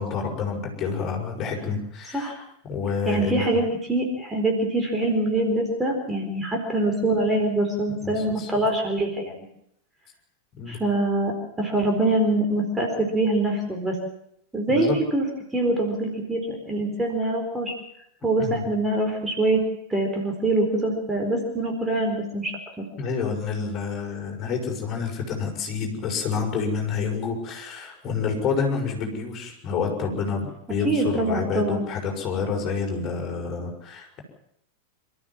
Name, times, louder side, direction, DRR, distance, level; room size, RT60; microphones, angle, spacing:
voice 1, 0.0-3.6 8.0-8.5 10.6-10.8 14.7-14.9 18.4-18.6 23.0-34.2, left 5 dB, 30° left, 1 dB, 6.3 m, -28 dB
voice 2, 3.1-9.3 10.7-11.3 11.6-14.0 14.5-15.2 15.5-17.7 18.2-19.6 19.9-22.8 30.8-31.8, right 2 dB, 10° right, 1 dB, 4.4 m, -24 dB
27.5 x 14.0 x 7.5 m, 0.74 s
figure-of-eight pair, 90°, 0 cm